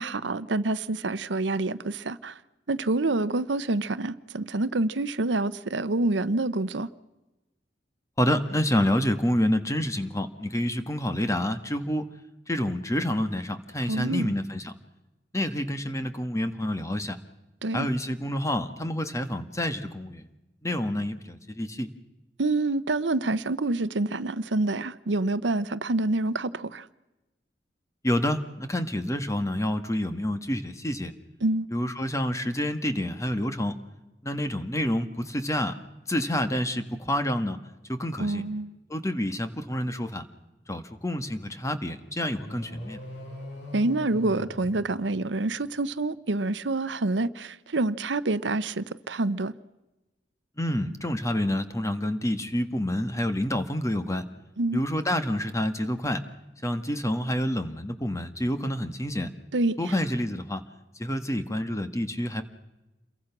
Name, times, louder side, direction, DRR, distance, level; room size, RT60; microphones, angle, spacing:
voice 1, 0.0-2.4 2.7-6.9 13.9-14.3 17.6-17.9 22.4-26.8 31.4-31.7 38.2-38.8 43.7-49.5 54.6-54.8 59.5-59.8, right 2 dB, 85° right, 0.9 m, -27 dB
voice 2, 8.2-12.1 12.5-14.7 15.3-17.2 17.7-20.3 20.6-21.9 28.0-31.1 31.7-33.8 34.2-35.8 36.1-37.6 37.9-38.4 38.9-40.2 40.7-43.0 50.6-54.2 54.7-56.2 56.6-59.3 59.8-60.6 61.0-62.4, left 1 dB, 15° left, 1.6 m, -28 dB
sound 1, 42.3-45.6, equal, 70° left, 7.5 m, -41 dB
28.5 x 22.5 x 6.1 m
head